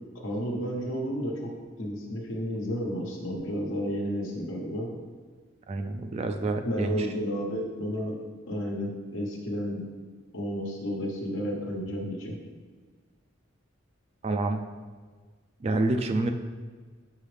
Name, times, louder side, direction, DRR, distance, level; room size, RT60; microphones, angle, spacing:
voice 1, 0.2-1.5 1.8-4.9 6.6-8.1 8.5-9.8 10.3-12.4, equal, 80° left, 0 dB, 1.2 m, -32 dB
voice 2, 5.7-7.1 14.2-14.6 15.6-16.3, right 2 dB, 35° right, 5 dB, 0.3 m, -28 dB
6.2 x 5.5 x 3.3 m, 1.5 s
head